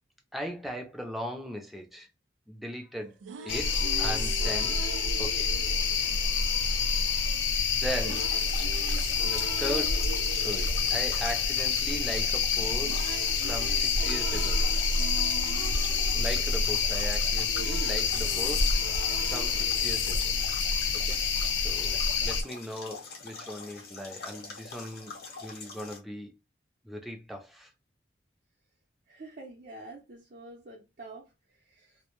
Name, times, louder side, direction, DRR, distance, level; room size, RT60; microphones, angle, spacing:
voice 1, 0.3-2.1 2.5-3.2 3.4-4.8 5.2-5.5 7.7-8.5 9.2-13.2 13.4-14.6 16.1-18.8 19.3-20.3 20.9-21.2 21.6-26.3 26.8-27.7, equal, ahead, 0.5 m, -38 dB
sound 1, 3.0-7.1 8.0-12.2 12.5-21.0, right 6 dB, 90° right, 0.3 m, -43 dB
sound 2, 3.5-22.4, left 5 dB, 90° left, 0.5 m, -27 dB
sound 3, 7.9-26.0, left 4 dB, 60° left, 0.7 m, -44 dB
voice 2, 29.1-32.0, right 2 dB, 50° right, 0.6 m, -47 dB
2.1 x 2.1 x 2.9 m
head